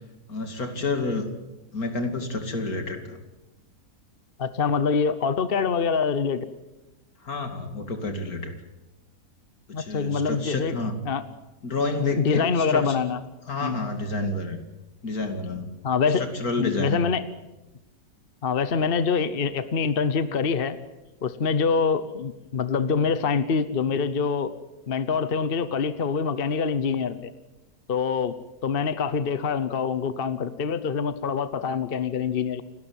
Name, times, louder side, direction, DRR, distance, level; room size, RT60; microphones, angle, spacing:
voice 1, 0.3-1.2 1.7-3.0 7.3-8.5 9.8-11.0 11.6-12.9 13.5-14.6 15.0-15.7 16.2-17.0, left 3 dB, 65° left, 6 dB, 3.0 m, -29 dB
voice 2, 4.4-6.4 9.7-11.2 12.0-13.2 13.6-13.8 15.8-16.2 16.6-17.3 18.4-20.8 21.2-24.5 24.9-27.3 27.9-28.3 28.6-32.6, left 5 dB, 45° left, 13 dB, 0.9 m, -25 dB
29.0 x 12.5 x 9.5 m, 1.0 s
omnidirectional pair, 1.7 m